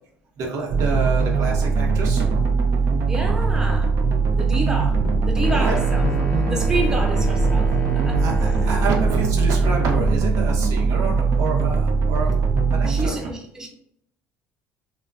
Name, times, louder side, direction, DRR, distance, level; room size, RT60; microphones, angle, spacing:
voice 1, 0.4-2.5 5.6-5.8 7.4-7.8 8.2-12.3 12.7-13.4, right 4 dB, 65° right, -1 dB, 0.8 m, -28 dB
sound 1, 0.7-13.1, right 5 dB, 50° right, 0.4 m, -20 dB
voice 2, 3.1-3.9 4.3-6.0 6.5-8.3 12.8-13.7, right 2 dB, 10° right, 0 dB, 0.6 m, -29 dB
sound 2, 4.8-10.3, left 4 dB, 85° left, 0.5 m, -30 dB
sound 3, 5.4-9.4, left 1 dB, 25° left, 0.6 m, -33 dB
3.1 x 2.0 x 2.3 m, 0.72 s
supercardioid pair, 95°, 6 cm